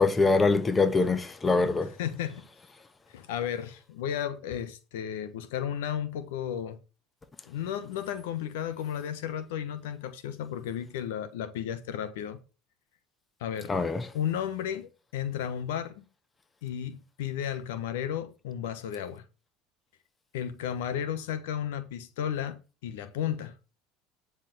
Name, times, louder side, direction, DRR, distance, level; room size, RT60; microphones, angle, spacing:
voice 1, 0.0-1.9 13.7-14.0, left 3 dB, 20° left, 1.5 m, -23 dB
voice 2, 2.0-2.5 3.1-6.8 7.5-12.4 13.4-13.7 14.1-16.0 16.6-19.2 20.3-23.5, left 9 dB, 85° left, 1.1 m, -33 dB
9.9 x 4.9 x 7.7 m
supercardioid pair, 95°, 0 cm